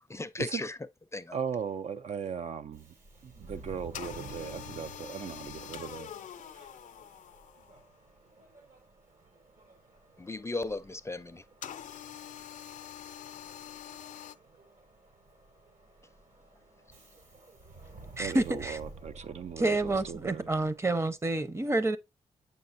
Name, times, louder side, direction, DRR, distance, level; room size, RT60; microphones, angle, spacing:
voice 1, 0.1-0.8 1.1-1.4 10.2-11.4, left 2 dB, 20° left, 0.5 m, -36 dB
voice 2, 1.3-2.9 3.2-6.1 6.5-6.7 18.2-20.5, right 7 dB, 55° right, 0.4 m, -38 dB
Subway metro underground, 2.7-21.0, right 3 dB, 75° right, 3.0 m, -52 dB
sound 1, 3.9-7.9 11.6-14.4, left 10 dB, 75° left, 0.5 m, -45 dB
voice 3, 18.2-18.8 19.6-22.0, right 2 dB, 20° right, 0.7 m, -28 dB
7.6 x 5.3 x 2.6 m
cardioid pair, 60°, 13 cm